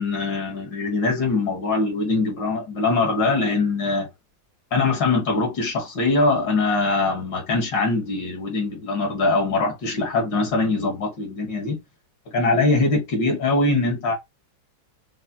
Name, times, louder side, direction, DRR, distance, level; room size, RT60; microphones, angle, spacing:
voice 1, 0.0-4.1 4.7-11.7 12.3-14.1, left 3 dB, 80° left, 2.3 m, -22 dB
5.4 x 2.8 x 2.2 m
omnidirectional pair, 2.0 m